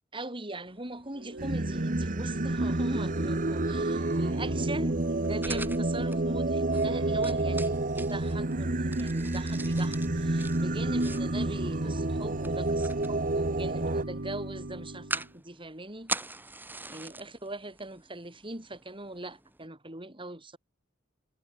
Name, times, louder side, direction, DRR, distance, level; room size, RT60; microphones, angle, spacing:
voice 1, 0.1-16.1 16.9-20.6, right 2 dB, 25° right, 5.5 m, -40 dB
sound 1, 0.6-19.7, right 2 dB, 10° right, 6.2 m, -44 dB
Organ / Church bell, 1.1-15.3, right 1 dB, 60° right, 1.6 m, -37 dB
Singing, 1.4-14.0, right 2 dB, 45° right, 1.2 m, -30 dB
head